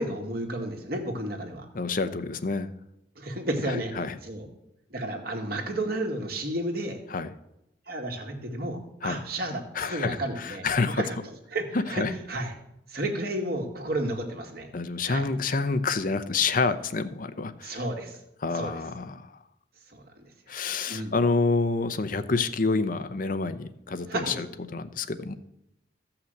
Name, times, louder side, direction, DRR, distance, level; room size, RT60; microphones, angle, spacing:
voice 1, 0.0-1.7 3.2-3.9 4.2-4.5 4.9-7.0 7.9-11.2 11.5-12.5 12.9-14.7 15.1-15.3 17.6-18.2 18.5-18.8 19.9-20.0 20.9-21.2 24.1-24.4, right 1 dB, 55° right, 2 dB, 2.1 m, -32 dB
voice 2, 1.7-2.7 3.7-4.2 7.1-7.3 9.0-9.2 9.7-11.0 11.7-12.1 14.7-17.8 18.4-19.4 20.5-24.5 24.7-25.3, left 4 dB, 50° left, 11 dB, 0.7 m, -28 dB
14.0 x 5.9 x 7.8 m, 0.85 s
head